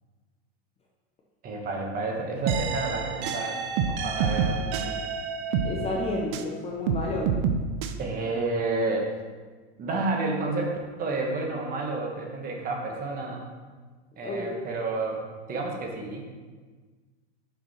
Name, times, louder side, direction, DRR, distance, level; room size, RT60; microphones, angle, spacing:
voice 1, 1.4-3.6 3.9-5.0 8.0-9.1 9.8-13.4 14.2-15.2 15.5-16.2, right 3 dB, 25° right, 1 dB, 1.0 m, -30 dB
sound 1, 2.5-6.5 6.9-7.9, right 6 dB, 45° right, 0.5 m, -28 dB
voice 2, 5.6-7.3 14.2-14.6, left 2 dB, 15° left, -2 dB, 0.5 m, -31 dB
5.5 x 5.3 x 4.2 m, 1.4 s
supercardioid pair, 140°, 34 cm